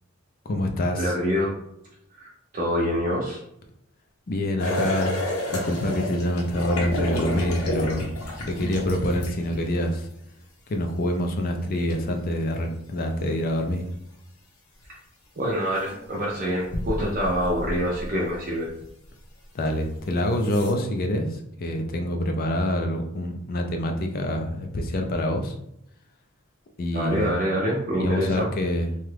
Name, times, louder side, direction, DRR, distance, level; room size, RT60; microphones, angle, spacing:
voice 1, 0.5-1.1 4.3-5.1 5.5-8.1 8.4-10.1 10.7-13.8 19.5-25.6 26.8-27.3 28.0-28.9, left 1 dB, 40° left, 4 dB, 0.4 m, -26 dB
voice 2, 1.0-1.5 2.1-3.4 14.9-15.0 15.4-18.7 26.9-28.5, equal, 40° right, -4 dB, 0.5 m, -26 dB
sound 1, 4.6-9.9 11.9-12.0 14.8-14.9 15.7-16.0 16.6-18.3 18.8-18.9 19.8-19.9 20.4-20.7, left 1 dB, 80° left, 0.8 m, -30 dB
2.9 x 2.3 x 3.2 m, 0.76 s
head